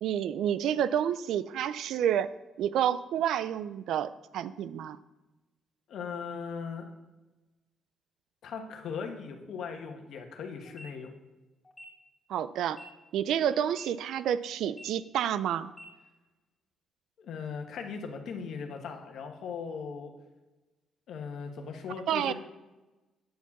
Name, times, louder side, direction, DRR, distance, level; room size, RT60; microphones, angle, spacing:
voice 1, 0.0-2.3 2.6-5.0 12.3-12.8 13.1-15.7 22.1-22.3, right 9 dB, 80° right, 15 dB, 0.4 m, -29 dB
voice 2, 5.9-6.9 8.4-11.1 17.2-20.1 21.1-22.3, left 6 dB, 70° left, 4 dB, 1.3 m, -38 dB
sound 1, 10.6-10.9 11.6-11.8 12.6-12.9 13.6-13.8 14.6-14.9 15.6-15.8, left 1 dB, 20° left, 2.3 m, -48 dB
9.3 x 4.6 x 7.1 m, 1.1 s
cardioid pair, 100°, 0 cm